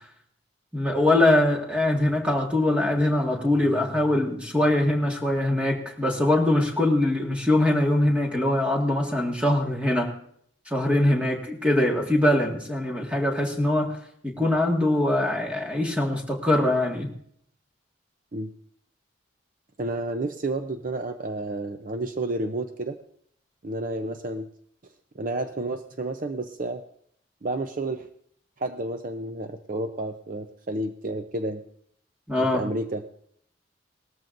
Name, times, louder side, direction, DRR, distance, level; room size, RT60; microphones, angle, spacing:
voice 1, 0.7-10.1 10.7-14.0 14.2-17.1 32.3-32.6, left 1 dB, 5° right, 1 dB, 1.8 m, -23 dB
voice 2, 19.8-23.0 23.6-24.5 25.2-26.8 27.4-28.1 28.6-31.6 32.4-33.0, right 2 dB, 45° right, 8 dB, 0.6 m, -30 dB
19.0 x 13.5 x 2.6 m, 0.66 s
head